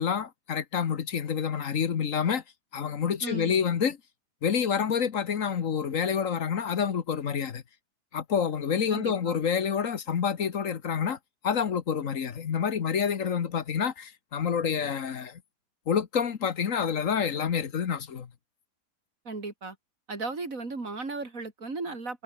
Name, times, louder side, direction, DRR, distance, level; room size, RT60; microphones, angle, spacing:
voice 1, 0.0-2.4 2.7-4.0 4.4-7.6 8.1-11.2 11.4-15.4 15.9-18.3, left 7 dB, 60° left, 1.5 m, -28 dB
voice 2, 3.2-3.5 8.9-9.4 19.2-19.8 20.1-22.2, right 3 dB, 60° right, 4.1 m, -36 dB
omnidirectional pair, 1.6 m